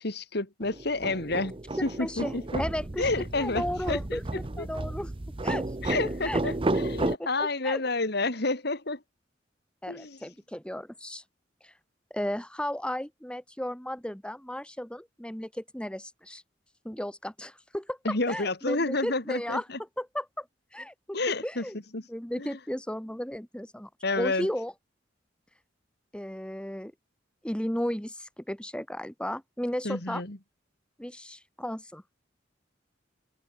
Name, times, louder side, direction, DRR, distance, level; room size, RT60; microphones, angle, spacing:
voice 1, 0.0-2.6 3.0-4.2 4.6-4.7 5.8-9.0 9.9-10.2 18.0-19.8 21.1-21.6 21.9-22.0 22.4-22.5 24.0-24.5 29.8-30.4, left 2 dB, 60° left, 2.8 m, -30 dB
sound 1, 0.6-7.2, right 2 dB, 30° right, 0.9 m, -32 dB
voice 2, 2.0-2.3 2.6-3.1 3.4-5.1 5.4-5.7 6.0-6.4 7.0-7.8 9.8-11.2 11.6-11.7 12.1-16.4 16.9-19.6 20.0-20.5 20.7-21.2 21.4-21.8 22.1-23.9 24.2-24.7 26.1-26.9 27.4-30.2 31.0-32.0, equal, 5° left, 1.8 m, -34 dB
head